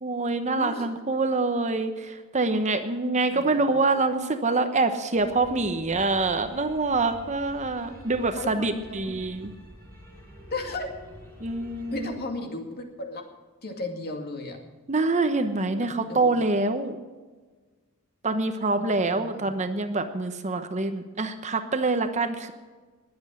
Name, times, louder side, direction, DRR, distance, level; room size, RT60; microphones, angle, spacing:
voice 1, 0.0-9.5 11.4-12.1 14.9-17.0 18.2-22.5, right 3 dB, 30° right, 8 dB, 0.9 m, -25 dB
voice 2, 3.3-3.7 7.9-9.1 10.5-10.9 11.9-13.3 13.6-14.6 15.7-16.3 18.8-19.6, left 2 dB, 45° left, 3 dB, 2.3 m, -36 dB
sound 1, 5.1-12.1, equal, 10° left, 5.4 m, -47 dB
21.0 x 8.0 x 6.3 m, 1.4 s
head